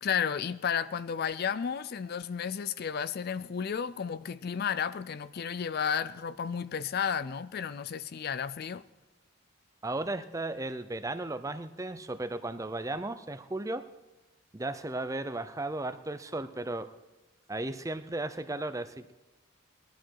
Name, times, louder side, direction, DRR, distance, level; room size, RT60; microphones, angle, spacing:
voice 1, 0.0-8.8, left 7 dB, 45° left, 0.4 m, -32 dB
voice 2, 9.8-13.8 14.5-16.9 17.5-19.1, right 2 dB, 15° right, 0.5 m, -35 dB
20.5 x 11.5 x 4.7 m
head